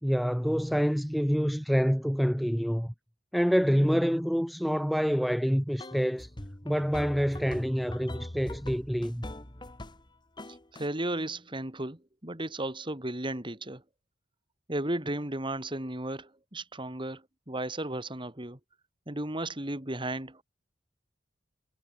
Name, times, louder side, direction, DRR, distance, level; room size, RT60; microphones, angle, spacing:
voice 1, 0.0-2.9 3.3-6.3 6.6-9.2, equal, ahead, 0.9 m, -27 dB
sound 1, 5.8-10.1 10.4-10.9, left 1 dB, 25° left, 1.8 m, -41 dB
voice 2, 10.7-13.8 14.7-18.6 19.1-20.4, right 1 dB, 25° right, 3.2 m, -34 dB
head